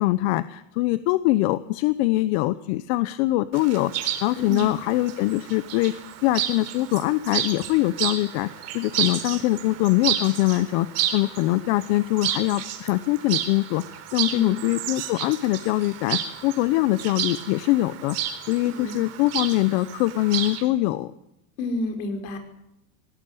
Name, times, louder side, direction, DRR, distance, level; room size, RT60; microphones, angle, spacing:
voice 1, 0.0-5.9 6.2-18.2 18.5-21.1, left 17 dB, 60° left, 14 dB, 1.0 m, -23 dB
Chirp tweet, 3.5-20.6, right 10 dB, 40° right, 4.2 m, -31 dB
voice 2, 4.4-4.7 14.3-14.6 18.6-19.0 21.6-22.4, left 2 dB, 75° left, 6 dB, 5.7 m, -29 dB
19.0 x 18.0 x 9.3 m, 0.84 s
supercardioid pair, 135°, 39 cm